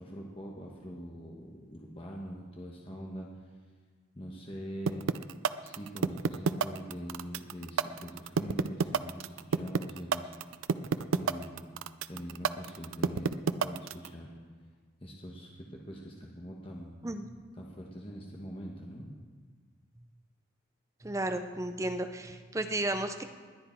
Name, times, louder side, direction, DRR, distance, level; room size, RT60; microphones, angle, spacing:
voice 1, 0.0-3.3 4.1-5.1 5.6-10.5 11.1-11.8 12.1-14.3 15.0-17.0 17.6-19.1, equal, 25° left, -1 dB, 1.2 m, -43 dB
sound 1, 4.9-14.1, right 5 dB, 85° right, 0.5 m, -28 dB
voice 2, 21.0-23.2, right 1 dB, 15° right, 7 dB, 0.6 m, -33 dB
20.5 x 9.8 x 4.5 m, 1.5 s
head